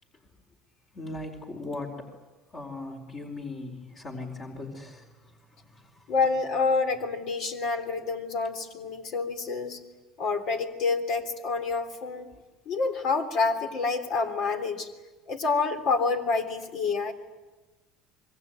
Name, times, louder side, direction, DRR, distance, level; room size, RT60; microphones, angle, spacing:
voice 1, 0.9-2.1 2.5-6.1, left 2 dB, 35° left, 2 dB, 4.5 m, -39 dB
voice 2, 6.1-9.8 10.2-12.3 12.6-14.9 15.3-17.1, left 4 dB, 60° left, 6 dB, 3.4 m, -28 dB
26.0 x 22.5 x 9.3 m, 1.2 s
supercardioid pair, 100°, 0 cm